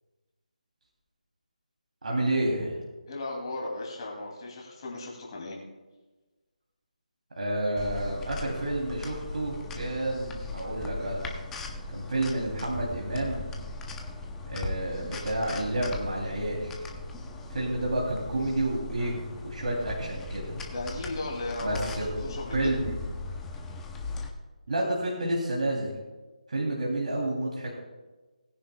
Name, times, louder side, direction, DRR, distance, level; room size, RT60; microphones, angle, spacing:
voice 1, 2.0-2.8 7.4-11.3 11.9-13.5 14.5-16.8 17.5-20.6 21.6-22.1 22.5-23.0 24.7-25.9 26.5-27.7, right 1 dB, 65° right, -3 dB, 2.9 m, -30 dB
voice 2, 3.1-5.6 20.7-22.8, left 2 dB, 35° left, -2 dB, 2.6 m, -36 dB
sound 1, 7.8-24.3, left 2 dB, 5° left, 0.6 m, -38 dB
20.0 x 9.9 x 2.3 m, 1.2 s
figure-of-eight pair, 165°, 4 cm